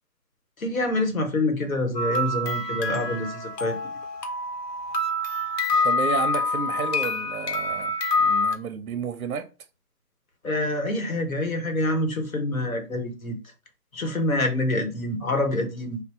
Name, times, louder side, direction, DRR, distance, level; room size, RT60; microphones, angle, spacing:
voice 1, 0.6-3.8 10.4-13.4 13.9-16.0, left 1 dB, 55° left, 1.0 m, -26 dB
sound 1, 1.9-8.5, left 2 dB, 80° left, 1.0 m, -26 dB
voice 2, 5.8-9.5, right 6 dB, 60° right, 0.7 m, -31 dB
3.5 x 2.1 x 4.0 m
figure-of-eight pair, 170°, 49 cm